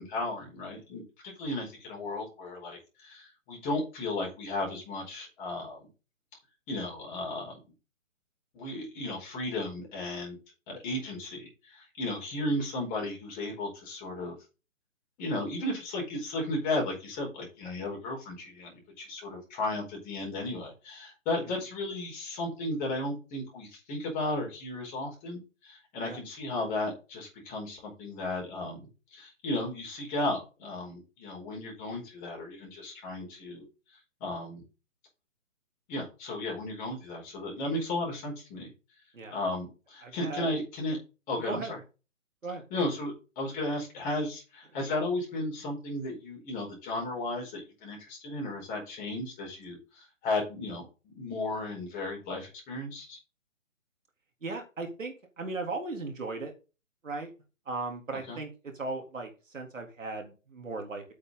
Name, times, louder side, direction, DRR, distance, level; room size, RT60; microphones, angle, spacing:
voice 1, 0.0-5.9 6.7-7.6 8.5-10.4 10.7-14.4 15.2-33.6 34.2-34.6 35.9-38.7 39.3-41.0 41.3-41.8 42.7-53.2 58.3-58.4, left 2 dB, 20° left, -1 dB, 4.8 m, -34 dB
voice 2, 40.0-40.5 41.5-41.7 42.4-42.6 54.4-56.5 57.0-57.3 57.7-61.0, right 3 dB, 70° right, 3 dB, 3.7 m, -37 dB
8.5 x 8.0 x 3.9 m, 0.31 s
figure-of-eight pair, 145°, 39 cm